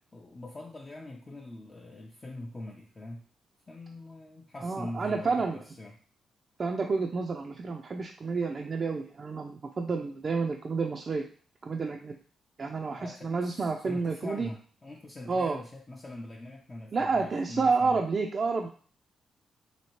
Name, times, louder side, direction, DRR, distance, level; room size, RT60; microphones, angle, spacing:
voice 1, 0.1-3.2 3.7-6.0 12.9-18.0, left 1 dB, 30° left, -1 dB, 0.5 m, -43 dB
voice 2, 4.6-5.6 6.6-11.2 11.6-12.2 12.6-14.5 15.3-15.6 16.9-18.7, right 4 dB, 45° right, 2 dB, 0.3 m, -29 dB
2.8 x 2.7 x 3.0 m, 0.43 s
supercardioid pair, 65°, 0 cm